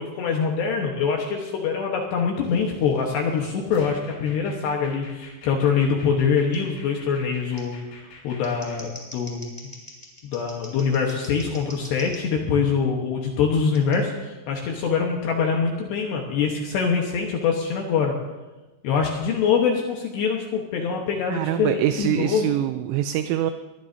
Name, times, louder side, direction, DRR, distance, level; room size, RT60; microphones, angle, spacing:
voice 1, 0.0-7.8 8.2-9.4 10.2-18.2 18.8-22.5, left 6 dB, 70° left, 0 dB, 3.0 m, -24 dB
sound 1, 2.4-8.8, left 2 dB, 85° left, 7.4 m, -46 dB
Scissors, 6.5-6.6 7.5-7.6 8.3-12.2 13.7-14.0, equal, 5° left, 3.8 m, -44 dB
voice 2, 21.3-23.5, right 12 dB, 80° right, 8 dB, 3.0 m, -24 dB
23.0 x 18.5 x 2.8 m, 1.1 s
omnidirectional pair, 5.9 m